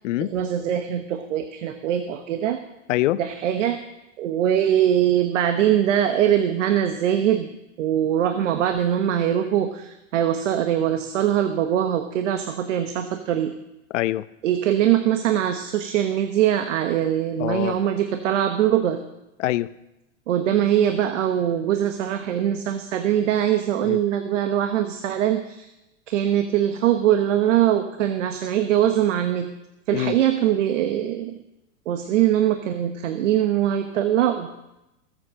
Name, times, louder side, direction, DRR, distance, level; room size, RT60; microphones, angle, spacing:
voice 1, 0.2-2.6 3.2-3.8 4.2-7.5 7.8-13.5 14.4-19.0 20.3-25.7 26.1-29.5 29.9-31.4 31.9-34.5, right 10 dB, 75° right, 8 dB, 1.3 m, -22 dB
voice 2, 2.9-3.2 13.9-14.2 17.4-17.8 19.4-19.7 23.9-24.0 29.9-30.1, left 16 dB, 75° left, 16 dB, 0.8 m, -24 dB
20.5 x 8.1 x 6.4 m, 0.91 s
hypercardioid pair, 115°, 37 cm